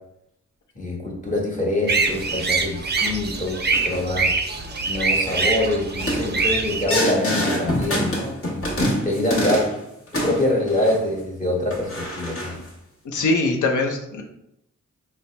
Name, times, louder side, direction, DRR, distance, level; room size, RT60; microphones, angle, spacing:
voice 1, 0.7-4.4 4.9-8.6 9.0-9.7 10.1-12.6, left 1 dB, 25° left, -3 dB, 1.2 m, -25 dB
sound 1, 1.9-6.8, right 4 dB, 35° right, 0.5 m, -24 dB
sound 2, 2.0-2.5 3.0-3.2 3.7-4.1 4.5-4.8 5.1-5.4 5.9-9.8 10.1-11.2 11.7-12.7, equal, 50° left, 1.2 m, -27 dB
voice 2, 13.0-14.2, left 2 dB, 85° left, 2 dB, 0.6 m, -22 dB
4.1 x 2.0 x 3.2 m, 0.81 s
cardioid pair, 65°, 29 cm